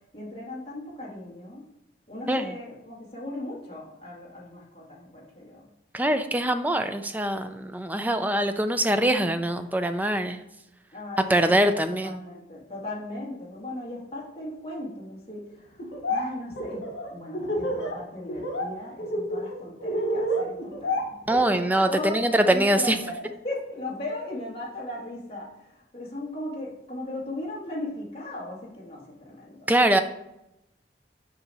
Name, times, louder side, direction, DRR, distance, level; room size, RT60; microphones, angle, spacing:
voice 1, 0.1-1.7 2.1-5.7 10.9-11.8 12.0-21.2 21.9-29.7, left 1 dB, 30° left, -5 dB, 2.0 m, -37 dB
voice 2, 5.9-10.4 11.3-12.2 21.3-23.0 29.7-30.0, right 1 dB, 10° right, 8 dB, 0.4 m, -23 dB
Laughter, 15.8-16.2 16.5-17.9 18.3-18.7 19.0-21.8, equal, 75° left, 1.7 m, -28 dB
7.1 x 5.0 x 4.1 m, 0.86 s
head